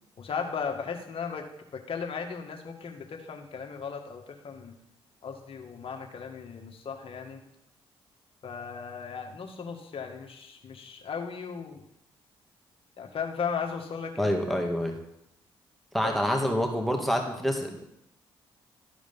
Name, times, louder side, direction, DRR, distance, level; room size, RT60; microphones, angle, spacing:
voice 1, 0.2-1.5 1.7-4.8 5.2-7.4 8.4-11.8 13.0-14.7 16.0-16.4, left 6 dB, 55° left, 3 dB, 1.7 m, -36 dB
voice 2, 14.2-14.9 15.9-17.8, equal, ahead, 3 dB, 2.0 m, -27 dB
13.0 x 4.9 x 5.5 m, 0.80 s
supercardioid pair, 50°, 11 cm